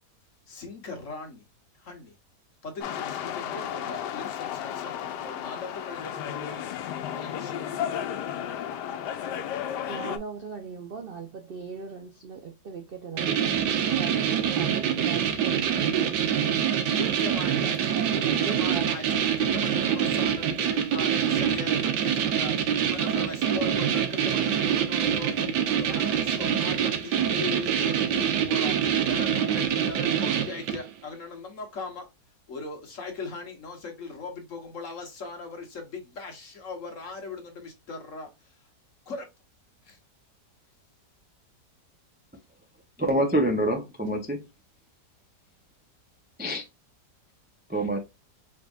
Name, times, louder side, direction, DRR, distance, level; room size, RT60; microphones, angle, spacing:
voice 1, 0.5-1.4 1.8-2.1 2.6-6.6 7.1-7.5 17.0-22.5 22.9-32.1 32.5-38.3 39.1-39.3 39.8-40.0, left 3 dB, 50° left, 1.5 m, -39 dB
sound 1, 2.8-10.2, left 9 dB, 90° left, 1.2 m, -33 dB
voice 2, 9.9-16.3 17.9-19.7, right 5 dB, 60° right, 0.5 m, -39 dB
sound 2, 13.2-30.9, right 8 dB, 85° right, 1.4 m, -25 dB
voice 3, 43.0-44.4 46.4-46.6 47.7-48.0, right 1 dB, 10° right, 0.4 m, -25 dB
4.9 x 3.5 x 2.4 m
omnidirectional pair, 1.8 m